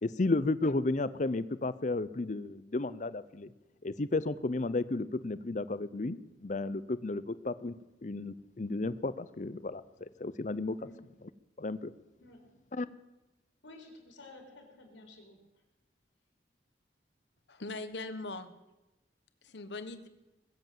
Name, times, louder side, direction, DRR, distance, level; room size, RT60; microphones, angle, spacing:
voice 1, 0.0-3.5 3.8-7.7 8.0-10.8 11.6-11.9 12.7-12.9, left 2 dB, 40° left, 16 dB, 0.6 m, -33 dB
voice 2, 13.6-15.4, left 2 dB, 85° left, 2 dB, 3.9 m, -52 dB
voice 3, 17.5-18.6 19.4-20.1, left 2 dB, 70° left, 11 dB, 1.2 m, -40 dB
21.5 x 7.8 x 7.5 m, 0.99 s
head